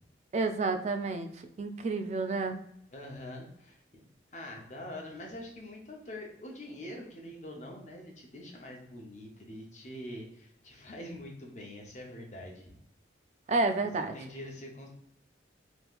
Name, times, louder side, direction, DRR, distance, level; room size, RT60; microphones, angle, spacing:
voice 1, 0.3-2.6 13.5-14.1, right 3 dB, 35° right, 8 dB, 0.3 m, -30 dB
voice 2, 2.9-3.8 4.3-12.7 13.8-13.9 14.1-14.9, left 1 dB, 40° left, 0 dB, 0.7 m, -44 dB
3.6 x 2.9 x 2.4 m, 0.75 s
head